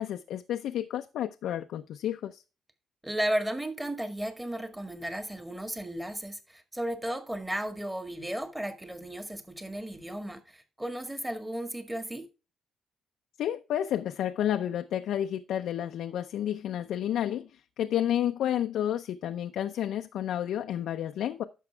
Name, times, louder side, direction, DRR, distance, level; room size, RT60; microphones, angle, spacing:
voice 1, 0.0-2.4 13.4-21.4, left 11 dB, 80° left, 0.6 m, -31 dB
voice 2, 3.0-12.3, right 1 dB, 10° right, 1.7 m, -34 dB
11.0 x 6.6 x 3.3 m
cardioid pair, 90°, 0 cm